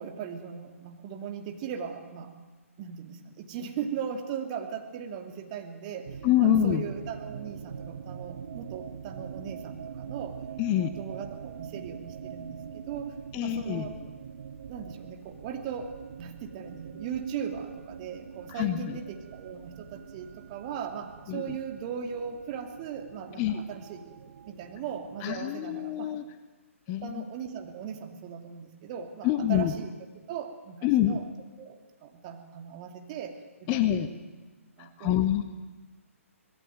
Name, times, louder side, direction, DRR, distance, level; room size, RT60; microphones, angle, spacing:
voice 1, 0.0-2.3 2.8-10.4 10.9-14.0 14.7-26.1 27.0-31.2 31.6-34.2 34.8-35.3, right 7 dB, 30° right, 4 dB, 2.7 m, -38 dB
sound 1, 6.1-25.9, right 7 dB, 45° right, 1.3 m, -44 dB
voice 2, 6.2-6.8 10.6-10.9 13.3-13.9 18.6-19.0 21.3-21.6 23.4-23.6 25.2-26.2 26.9-27.2 29.2-29.7 30.8-31.2 33.7-34.1 35.0-35.6, left 11 dB, 25° left, 10 dB, 1.1 m, -26 dB
26.0 x 20.5 x 9.3 m, 1.2 s
figure-of-eight pair, 130°, 8 cm